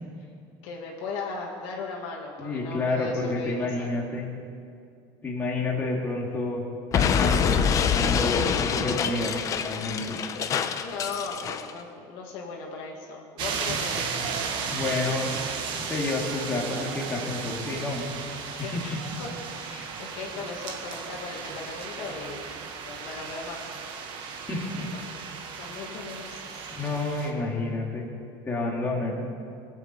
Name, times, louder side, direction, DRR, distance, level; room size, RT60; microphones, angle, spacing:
voice 1, 0.6-4.0 10.7-14.7 15.2-15.3 18.6-19.3 19.6-22.5 22.8-23.7 24.8-25.0 25.6-26.7, left 4 dB, 65° left, -1 dB, 2.2 m, -38 dB
voice 2, 2.4-4.3 5.2-6.7 6.9-9.4 9.6-10.2 14.7-15.5 15.9-18.1 18.6-18.8 24.5-24.9 25.7-25.8 26.7-28.1 28.4-29.2, left 2 dB, 15° left, -3 dB, 2.2 m, -29 dB
Explosion, 6.9-11.7, left 7 dB, 35° left, 0.7 m, -25 dB
sound 1, 13.4-27.3, right 6 dB, 55° right, 1.7 m, -35 dB
19.5 x 8.0 x 8.2 m, 2.4 s
cardioid pair, 155°, 10 cm